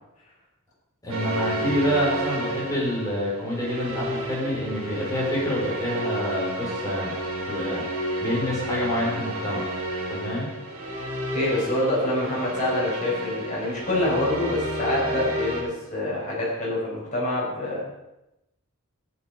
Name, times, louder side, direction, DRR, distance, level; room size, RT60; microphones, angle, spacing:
voice 1, 1.0-7.1 7.5-7.8 8.2-9.6 10.1-10.5, equal, 15° left, -6 dB, 5.2 m, -27 dB
sound 1, 1.1-15.6, equal, 80° right, 5.7 m, -31 dB
voice 2, 11.3-17.8, left 1 dB, 35° left, -6 dB, 6.1 m, -26 dB
14.0 x 10.0 x 5.4 m, 0.93 s
head